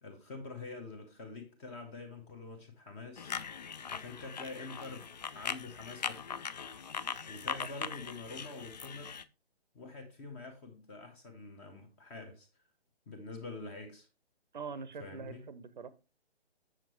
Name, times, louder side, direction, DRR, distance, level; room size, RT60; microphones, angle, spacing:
voice 1, 0.0-3.4 3.9-5.1 5.3-6.2 7.3-9.2 9.7-12.5 13.1-14.1 15.0-15.4, left 3 dB, 15° left, 0.7 m, -46 dB
sound 1, 3.2-9.2, left 6 dB, 45° left, 0.5 m, -40 dB
voice 2, 14.5-15.9, right 5 dB, 50° right, 0.7 m, -43 dB
7.4 x 7.1 x 2.9 m
figure-of-eight pair, 135°, 31 cm